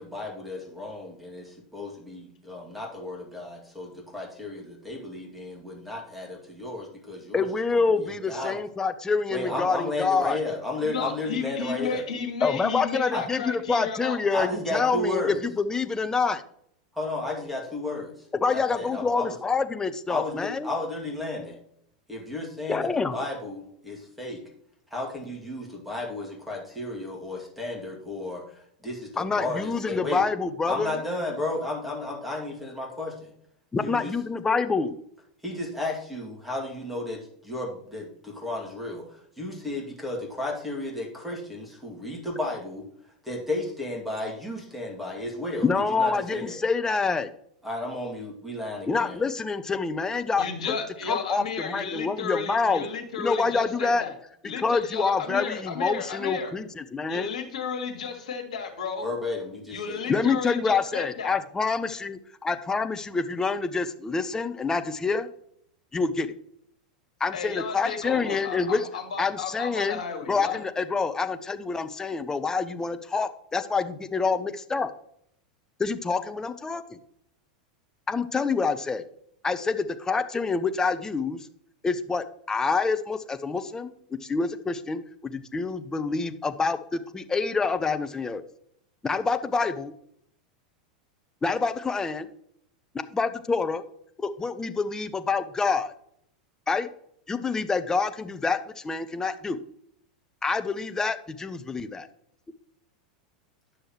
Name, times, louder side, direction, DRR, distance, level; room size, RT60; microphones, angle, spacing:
voice 1, 0.0-8.6 9.3-12.0 13.1-13.2 14.3-15.4 16.9-18.1 18.5-19.3 20.1-21.6 22.1-24.4 24.9-30.2 30.7-33.3 33.8-34.1 35.4-39.0 39.4-42.8 43.2-45.7 46.0-46.6 47.6-49.2 59.0-60.0, left 2 dB, ahead, -1 dB, 2.4 m, -33 dB
voice 2, 7.3-10.4 12.4-16.4 18.3-20.7 22.7-23.2 29.2-31.0 33.7-35.0 45.6-47.3 48.9-50.4 51.1-52.8 53.2-54.0 54.6-57.3 60.1-65.3 65.9-66.3 67.2-68.9 69.2-70.0 70.3-74.9 75.8-77.0 78.1-79.0 79.4-81.5 81.8-83.9 84.2-88.4 89.0-89.9 91.4-92.3 93.1-93.8 94.2-95.9 96.7-96.9 97.3-99.6 100.4-102.1, left 4 dB, 15° left, 10 dB, 0.7 m, -27 dB
voice 3, 10.8-14.2 50.4-54.1 54.4-56.5 57.1-59.1 59.7-61.3 67.3-70.6, left 6 dB, 70° left, 5 dB, 1.7 m, -33 dB
10.0 x 6.3 x 3.1 m, 0.70 s
figure-of-eight pair, 90°, 4 cm